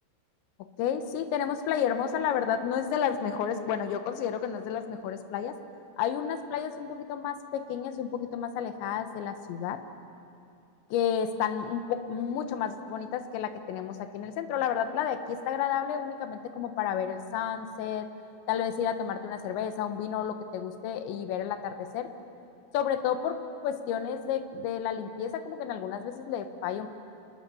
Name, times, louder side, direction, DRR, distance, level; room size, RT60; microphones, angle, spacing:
voice 1, 0.8-5.5 6.0-9.8 10.9-18.1 18.5-22.1 22.7-23.4 23.6-26.9, left 8 dB, 75° left, 8 dB, 3.2 m, -31 dB
27.5 x 19.5 x 7.0 m, 2.6 s
omnidirectional pair, 5.6 m